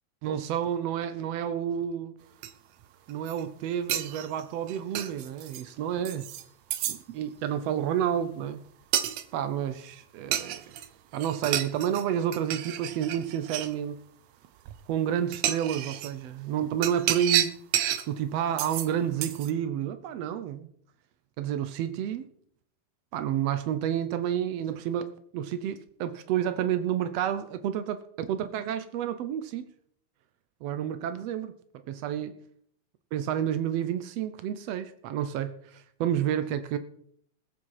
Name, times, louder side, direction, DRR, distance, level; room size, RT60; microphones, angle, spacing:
voice 1, 0.2-2.1 3.1-6.3 6.9-8.6 9.3-10.6 11.1-14.0 14.9-17.5 18.1-20.7 21.4-22.3 23.1-29.7 30.6-31.5 31.9-32.3 33.1-36.8, right 9 dB, 90° right, 1.4 m, -30 dB
sound 1, 2.4-2.5 3.1-3.4 3.9-5.6 6.0-6.4 6.7-7.0 8.9-9.2 10.3-10.9 11.1-12.0 12.3-13.7 14.7-14.8 15.3-16.1 16.8-18.1 18.6-18.9 19.2-19.5, right 11 dB, 70° right, 1.8 m, -30 dB
21.0 x 7.4 x 4.7 m
omnidirectional pair, 3.9 m